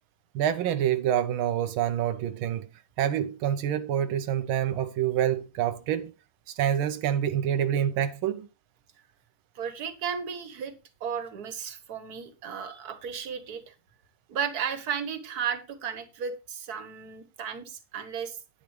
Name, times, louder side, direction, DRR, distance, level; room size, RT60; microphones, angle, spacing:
voice 1, 0.3-2.7 3.0-6.1 6.5-8.5, right 10 dB, 85° right, 1.5 m, -27 dB
voice 2, 9.6-10.7 11.0-13.7 14.3-18.4, right 7 dB, 50° right, 1.8 m, -34 dB
10.0 x 9.8 x 3.2 m
omnidirectional pair, 2.2 m